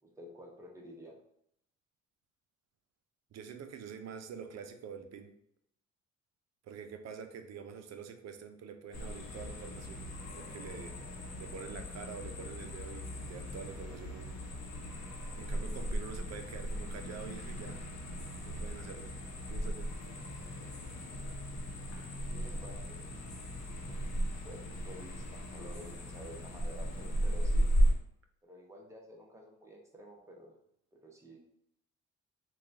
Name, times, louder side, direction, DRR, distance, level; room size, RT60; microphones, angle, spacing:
voice 1, 0.0-1.1 22.3-23.0 23.7-27.7 28.4-30.6 31.0-31.4, equal, 10° right, -1 dB, 0.8 m, -51 dB
voice 2, 3.3-5.3 6.6-10.1 10.4-11.0 11.4-14.4 15.4-17.8 18.4-19.2 19.5-19.9, right 6 dB, 60° right, 7 dB, 0.5 m, -46 dB
sound 1, 8.9-27.9, equal, 60° left, 0.8 m, -36 dB
3.8 x 2.3 x 2.5 m, 0.72 s
cardioid pair, 90°, 30 cm